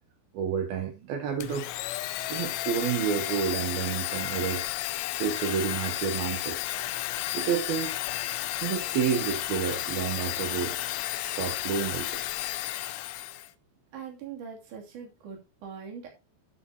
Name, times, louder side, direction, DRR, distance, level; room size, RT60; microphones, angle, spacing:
voice 1, 0.3-1.7 2.3-4.7 5.1-6.6 7.3-7.9 8.6-10.9 11.3-12.2, right 7 dB, 70° right, 2.5 m, -30 dB
Domestic sounds home sounds, 1.4-13.5, left 15 dB, 85° left, 3.1 m, -32 dB
voice 2, 13.9-16.2, right 7 dB, 45° right, 3.9 m, -42 dB
10.5 x 9.0 x 2.9 m
omnidirectional pair, 5.5 m